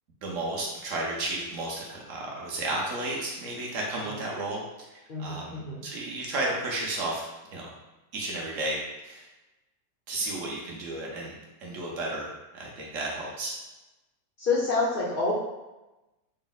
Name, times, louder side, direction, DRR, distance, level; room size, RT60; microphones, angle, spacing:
voice 1, 0.2-4.6 4.9-7.3 7.5-7.7 8.1-9.3 10.1-11.3 11.6-13.5, right 2 dB, 60° right, -2 dB, 1.0 m, -33 dB
voice 2, 5.1-5.8 14.4-15.3, left 3 dB, 60° left, -7 dB, 0.5 m, -27 dB
4.0 x 2.0 x 3.9 m, 1.0 s
omnidirectional pair, 1.8 m